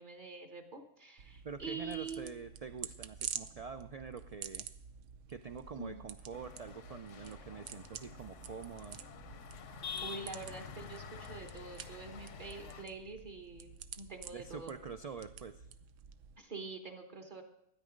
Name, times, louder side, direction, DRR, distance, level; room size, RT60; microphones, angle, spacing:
voice 1, 0.0-2.3 5.7-6.0 10.0-14.8 16.4-17.4, right 4 dB, 45° right, 5 dB, 1.3 m, -46 dB
sound 1, 1.2-16.4, right 8 dB, 85° right, 1.0 m, -49 dB
voice 2, 1.4-4.7 5.3-9.0 14.3-15.7, right 6 dB, 70° right, 9 dB, 0.3 m, -46 dB
sound 2, 6.3-12.8, left 6 dB, 80° left, 1.1 m, -48 dB
13.0 x 9.5 x 5.1 m, 0.83 s
omnidirectional pair, 1.2 m